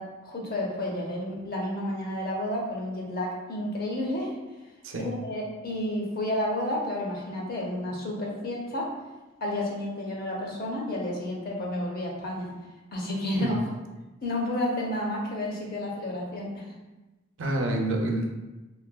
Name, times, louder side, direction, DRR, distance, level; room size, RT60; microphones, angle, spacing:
voice 1, 0.0-4.4 5.0-8.9 9.4-12.5 12.9-13.6 14.2-16.7, left 1 dB, 50° left, -2 dB, 0.6 m, -31 dB
voice 2, 17.4-18.3, right 1 dB, 75° right, 2 dB, 0.5 m, -28 dB
3.2 x 2.7 x 2.2 m, 1.1 s
head